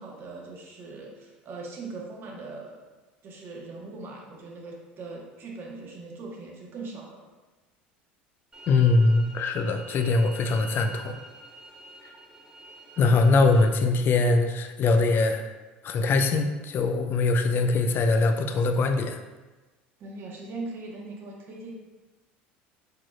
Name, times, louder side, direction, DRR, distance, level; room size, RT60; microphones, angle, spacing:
voice 1, 0.0-2.8 3.2-7.2 20.0-21.7, right 3 dB, 45° right, -1 dB, 1.1 m, -40 dB
sound 1, 8.5-13.7, right 2 dB, 15° right, 1.0 m, -46 dB
voice 2, 8.7-11.2 13.0-15.4 15.8-19.2, left 3 dB, 40° left, 6 dB, 0.5 m, -22 dB
4.8 x 4.3 x 2.3 m, 1.2 s
hypercardioid pair, 75°, 5 cm